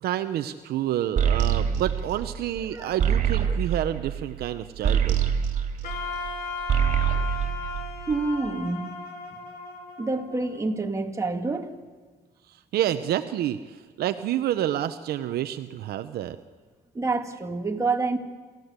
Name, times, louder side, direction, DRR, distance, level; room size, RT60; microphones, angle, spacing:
voice 1, 0.0-5.2 12.7-13.6 14.0-16.4, right 12 dB, 70° right, 9 dB, 0.9 m, -28 dB
sound 1, 1.2-6.3 6.6-8.4, right 8 dB, 45° right, 3.2 m, -25 dB
Wind instrument woodwind instrument, 5.8-10.9, left 4 dB, 65° left, 4.1 m, -36 dB
voice 2, 8.1-9.0 9.3-9.4 10.0-11.7 16.9-18.2, right 3 dB, 20° right, 3 dB, 2.2 m, -28 dB
27.5 x 14.5 x 8.2 m, 1.4 s
cardioid pair, 110°, 17 cm